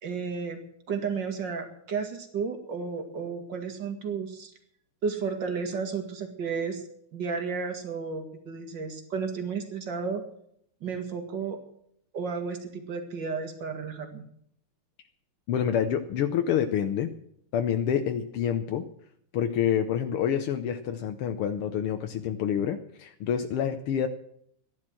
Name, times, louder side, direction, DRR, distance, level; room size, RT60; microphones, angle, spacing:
voice 1, 0.0-0.6 0.9-4.5 5.0-6.8 7.1-10.2 10.8-11.6 12.1-14.3, right 5 dB, 55° right, 6 dB, 2.9 m, -32 dB
voice 2, 15.5-17.1 17.5-18.9 19.3-24.1, left 9 dB, 85° left, 6 dB, 1.8 m, -27 dB
14.5 x 11.0 x 7.6 m, 0.68 s
omnidirectional pair, 2.4 m